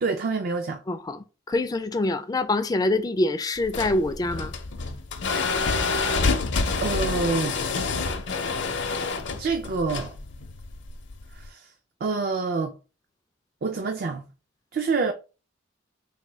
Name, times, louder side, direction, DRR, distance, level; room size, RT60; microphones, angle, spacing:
voice 1, 0.0-0.8 6.8-7.6 9.4-10.1 11.3-11.7 12.0-12.8 13.6-14.2 14.7-15.1, right 4 dB, 50° right, 0.4 m, -26 dB
voice 2, 0.9-4.5, left 2 dB, 20° left, 0.3 m, -25 dB
sound 1, 3.6-11.5, left 4 dB, 65° left, 0.6 m, -28 dB
3.5 x 2.2 x 4.1 m
head